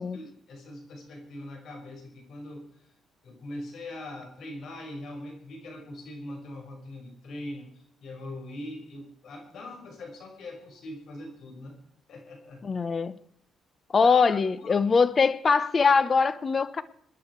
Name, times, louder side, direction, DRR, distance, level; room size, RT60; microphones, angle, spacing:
voice 1, 0.0-2.9 3.2-11.8 12.1-12.6 14.0-14.9, left 1 dB, 65° left, 5.5 m, -42 dB
voice 2, 12.6-13.2 13.9-16.8, left 5 dB, 40° left, 1.1 m, -22 dB
27.0 x 10.5 x 4.7 m
cardioid pair, 90°, 0 cm